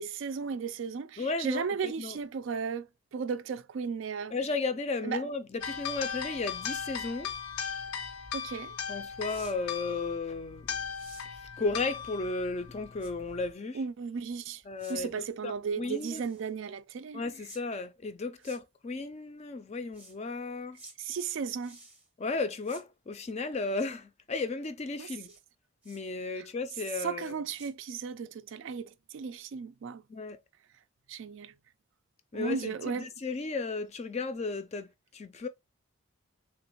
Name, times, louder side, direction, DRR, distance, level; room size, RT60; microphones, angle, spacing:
voice 1, 0.0-4.4 5.0-5.2 8.3-8.8 13.7-14.6 14.9-17.2 21.0-21.8 25.0-25.1 26.4-26.5 27.0-30.0 31.1-31.5 32.3-33.1, right 6 dB, 60° right, 0.3 m, -35 dB
voice 2, 1.2-2.2 4.3-7.3 8.9-10.8 11.6-13.8 14.7-15.1 15.4-16.2 17.1-20.8 22.2-25.3 25.9-27.4 30.1-30.4 32.3-35.5, left 3 dB, 30° left, 0.3 m, -34 dB
sound 1, 5.6-13.5, left 7 dB, 85° left, 0.5 m, -38 dB
sound 2, 9.2-9.6 10.9-11.3 13.0-13.1 14.8-15.0 15.9-16.5 17.5-17.6 18.4-18.6 19.9-20.2 20.7-21.0 21.6-22.1 22.6-22.8 25.2-25.4 25.8-26.0 26.8-27.0 27.2-27.7, right 2 dB, 5° right, 0.6 m, -52 dB
3.4 x 3.0 x 2.9 m
head